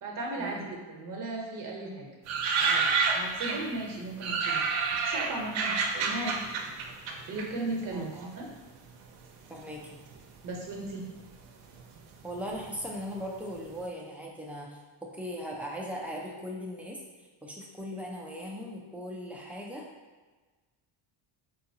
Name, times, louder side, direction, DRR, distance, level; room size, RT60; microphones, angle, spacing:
voice 1, 0.0-2.1 2.6-2.9 3.1-4.7 4.9-6.4 7.3-8.5 10.4-11.1, right 2 dB, 40° right, 0 dB, 0.8 m, -36 dB
sound 1, 2.3-3.8 4.2-8.1 8.3-9.2 9.9-10.4 10.7-10.8 11.0-13.3 13.6-13.7, right 5 dB, 80° right, 0.6 m, -29 dB
voice 2, 9.5-10.0 12.2-17.0 17.4-19.9, equal, 5° right, -3 dB, 0.3 m, -39 dB
3.7 x 2.4 x 2.7 m, 1.3 s
cardioid pair, 100°, 48 cm